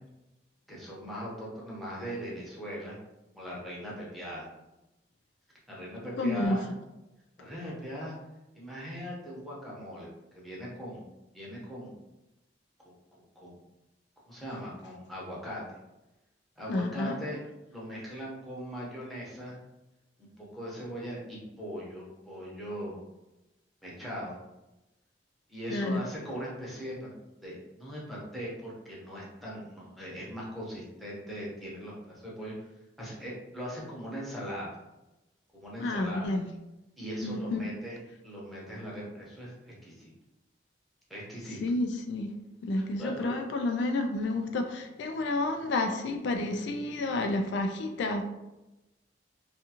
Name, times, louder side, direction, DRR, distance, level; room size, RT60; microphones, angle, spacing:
voice 1, 0.7-3.0 3.4-4.5 5.7-6.7 7.4-8.2 8.5-11.0 11.3-12.0 13.4-13.6 14.3-15.8 16.6-17.4 17.7-19.6 20.2-23.0 23.8-24.4 25.5-27.1 27.4-32.5 33.0-34.8 35.5-36.3 37.0-38.0 38.2-40.1 41.1-41.6 42.8-43.4, equal, ahead, -6 dB, 0.8 m, -40 dB
voice 2, 6.2-6.6 16.7-17.2 25.7-26.0 35.8-36.5 37.2-37.6 41.6-42.3 42.6-48.3, left 2 dB, 75° left, 5 dB, 0.3 m, -30 dB
2.5 x 2.4 x 2.8 m, 0.98 s
head